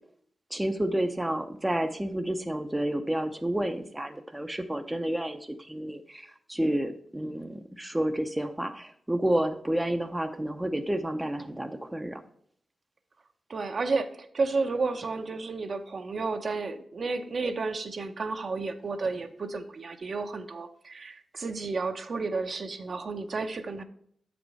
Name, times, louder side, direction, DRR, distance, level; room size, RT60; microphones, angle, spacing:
voice 1, 0.5-5.4 5.7-12.2, right 1 dB, 10° right, 6 dB, 0.6 m, -30 dB
voice 2, 13.5-23.8, right 3 dB, 50° right, 7 dB, 0.8 m, -32 dB
7.3 x 5.1 x 4.8 m, 0.65 s
wide cardioid pair, 95°, 0 cm